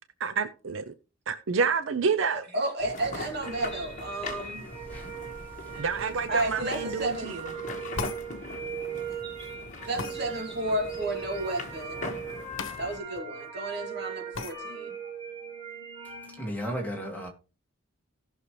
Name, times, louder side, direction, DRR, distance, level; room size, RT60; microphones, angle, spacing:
voice 1, 0.2-0.9 1.3-2.4 5.8-7.5, right 5 dB, 70° right, 0.6 m, -28 dB
voice 2, 2.5-4.6 5.7-5.8 6.3-7.3 9.8-12.0 12.8-14.9, right 1 dB, 55° right, 2.8 m, -32 dB
sound 1, 2.8-13.0, left 3 dB, 35° left, 1.6 m, -41 dB
sound 2, 3.4-16.5, right 6 dB, 25° right, 5.8 m, -39 dB
sound 3, 8.0-8.3 10.0-10.2 12.6-12.8 13.2-13.3 14.3-14.6, left 4 dB, 70° left, 1.1 m, -34 dB
voice 3, 16.4-17.3, equal, 10° left, 2.4 m, -34 dB
17.5 x 6.4 x 3.2 m
head